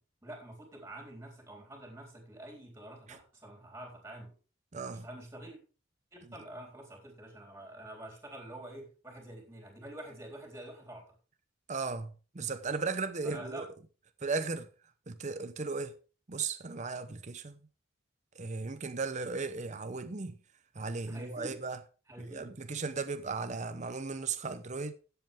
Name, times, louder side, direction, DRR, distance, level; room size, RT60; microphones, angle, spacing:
voice 1, 0.2-4.3 4.9-5.6 6.1-11.0 13.2-13.7 21.1-21.6 22.1-22.5, right 1 dB, 15° right, 3.9 m, -47 dB
voice 2, 4.7-5.1 11.7-13.7 14.2-14.7 15.1-15.9 16.3-17.6 18.4-20.4 20.7-21.8 22.2-24.9, right 4 dB, 35° right, 0.7 m, -36 dB
13.0 x 8.1 x 3.6 m
head